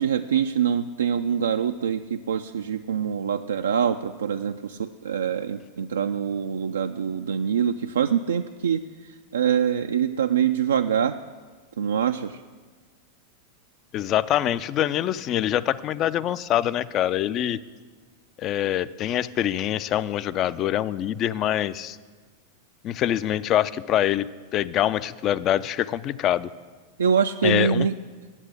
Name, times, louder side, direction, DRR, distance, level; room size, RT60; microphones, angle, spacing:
voice 1, 0.0-11.2 11.8-12.4 27.0-27.9, right 7 dB, 70° right, 6 dB, 0.3 m, -24 dB
voice 2, 13.9-17.6 18.4-22.0 22.8-24.3 24.5-26.5 27.4-27.9, left 11 dB, 35° left, 16 dB, 0.4 m, -24 dB
9.8 x 8.0 x 8.2 m, 1.5 s
figure-of-eight pair, 90°, 0 cm